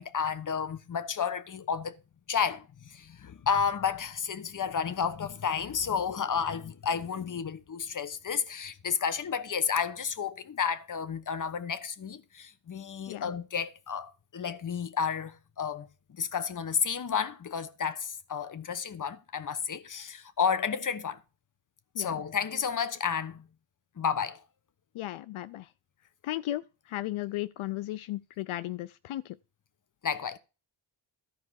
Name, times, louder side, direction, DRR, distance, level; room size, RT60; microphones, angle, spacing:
voice 1, 0.0-1.9 2.3-15.9 16.2-21.2 22.0-23.5 24.0-24.4 30.0-30.4, left 7 dB, 40° left, 1.1 m, -31 dB
voice 2, 24.9-25.7 26.2-26.6 26.9-29.4, left 15 dB, 75° left, 0.6 m, -35 dB
13.5 x 4.7 x 6.3 m
cardioid pair, 95°, 49 cm